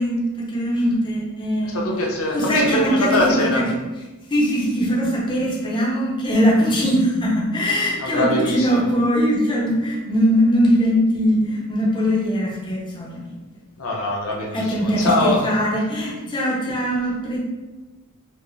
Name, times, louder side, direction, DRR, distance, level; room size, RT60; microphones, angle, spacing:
voice 1, 0.0-1.8 2.3-3.6 4.3-13.4 14.5-17.4, equal, 20° left, -3 dB, 0.6 m, -21 dB
voice 2, 1.6-3.6 8.0-8.8 13.8-15.5, left 1 dB, 65° left, -1 dB, 0.7 m, -23 dB
4.6 x 2.1 x 3.1 m, 1.1 s
head